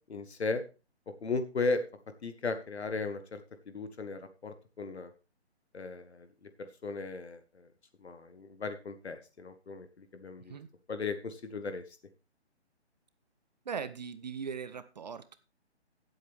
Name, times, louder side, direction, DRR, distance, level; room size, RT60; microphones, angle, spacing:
voice 1, 0.1-0.6 1.1-1.8 2.2-3.4 3.7-5.1 5.7-6.3 6.6-7.7 8.0-10.5 10.9-11.8, left 3 dB, 70° left, 9 dB, 1.5 m, -36 dB
voice 2, 13.6-15.4, right 6 dB, 40° right, 14 dB, 0.7 m, -39 dB
16.5 x 8.0 x 3.4 m, 0.31 s
figure-of-eight pair, 150°, 34 cm